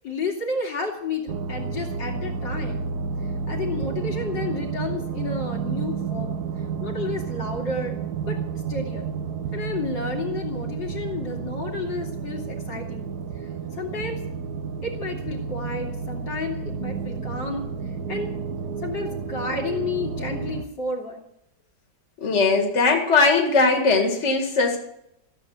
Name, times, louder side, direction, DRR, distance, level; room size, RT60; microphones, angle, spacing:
voice 1, 0.0-2.9 3.5-6.4 6.8-8.0 8.2-8.4 8.7-9.1 9.5-13.1 13.7-14.2 14.8-17.6 18.1-18.3 18.8-21.2, left 3 dB, 70° left, -1 dB, 3.3 m, -31 dB
sound 1, 1.3-20.7, right 5 dB, 60° right, 1.4 m, -31 dB
voice 2, 22.2-24.8, left 3 dB, 35° left, 2 dB, 2.3 m, -19 dB
15.0 x 7.7 x 9.4 m, 0.78 s
omnidirectional pair, 2.0 m